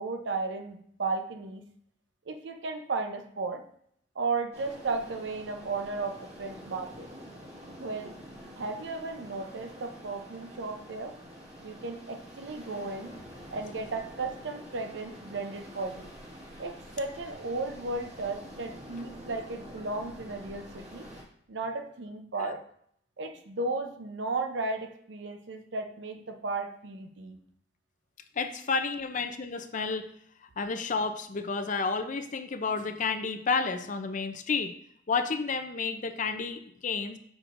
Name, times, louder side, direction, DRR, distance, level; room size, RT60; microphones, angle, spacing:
voice 1, 0.0-1.6 2.3-3.6 4.2-7.1 7.8-8.1 8.6-11.1 11.6-13.2 13.5-16.1 16.6-21.1 21.5-22.6 23.2-27.4, right 3 dB, 70° right, 6 dB, 0.7 m, -35 dB
sound 1, 4.5-21.2, equal, 35° right, 1.7 m, -47 dB
voice 2, 28.4-30.1 30.4-34.7 35.1-37.2, left 4 dB, 45° left, 9 dB, 0.5 m, -31 dB
6.5 x 6.0 x 2.6 m, 0.66 s
head